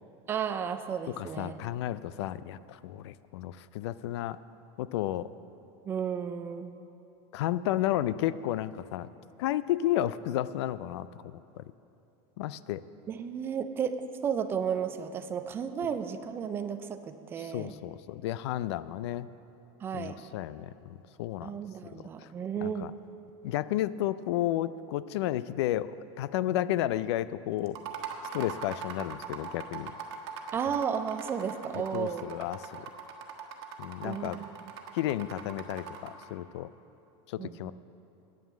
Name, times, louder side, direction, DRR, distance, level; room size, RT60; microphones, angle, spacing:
voice 1, 0.3-1.5 5.9-6.7 13.1-17.7 19.8-20.2 21.4-22.9 30.5-32.2 34.0-34.4 37.4-37.7, right 7 dB, 15° right, 10 dB, 0.3 m, -33 dB
voice 2, 1.2-4.4 4.8-5.3 7.3-9.1 9.4-11.6 12.4-12.8 17.4-19.3 19.9-21.5 22.2-22.3 22.6-22.9 23.4-27.8 28.3-29.9 31.7-32.9 33.8-34.4 34.9-36.7 37.3-37.7, left 13 dB, 80° left, 16 dB, 0.4 m, -32 dB
sound 1, 27.7-36.3, right 7 dB, 75° right, 1.3 m, -41 dB
9.3 x 9.2 x 7.3 m, 2.8 s
supercardioid pair, 175°, 14 cm